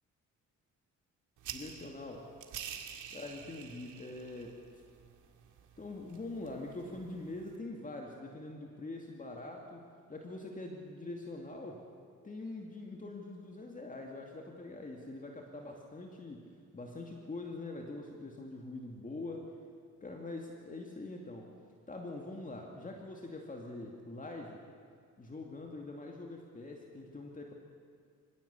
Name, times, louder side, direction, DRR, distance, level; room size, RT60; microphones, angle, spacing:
sound 1, 1.4-7.6, right 9 dB, 80° right, 2.1 m, -49 dB
voice 1, 1.5-2.3 3.1-4.6 5.8-11.9 12.2-16.4 16.7-19.5 20.0-21.5 21.9-24.6 25.2-27.5, left 2 dB, 25° left, 1 dB, 2.5 m, -44 dB
25.0 x 16.5 x 8.4 m, 2.1 s
cardioid pair, 90°, 30 cm